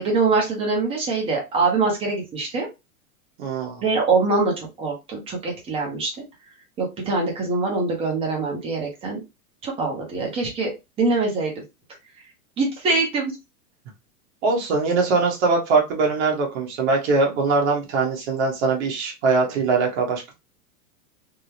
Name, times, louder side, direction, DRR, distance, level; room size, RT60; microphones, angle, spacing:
voice 1, 0.0-2.7 3.8-6.1 6.8-9.2 9.6-10.7 11.0-11.6 12.6-13.3, right 3 dB, 10° right, -1 dB, 0.8 m, -23 dB
voice 2, 3.4-3.8 14.4-20.3, right 4 dB, 45° right, 0 dB, 1.4 m, -22 dB
3.6 x 2.1 x 2.8 m, 0.25 s
supercardioid pair, 160°, 47 cm